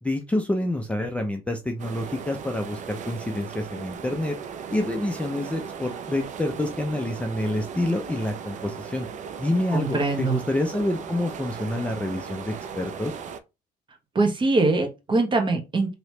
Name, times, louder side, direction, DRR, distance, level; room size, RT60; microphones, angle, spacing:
voice 1, 0.0-4.4 4.7-9.1 9.4-13.1, left 1 dB, 5° left, 0.4 m, -27 dB
sound 1, 1.8-13.4, right 7 dB, 45° right, 0.5 m, -37 dB
voice 2, 9.7-10.4 14.1-15.9, right 3 dB, 30° right, 0.9 m, -23 dB
3.0 x 2.9 x 3.1 m
cardioid pair, 110°, 17 cm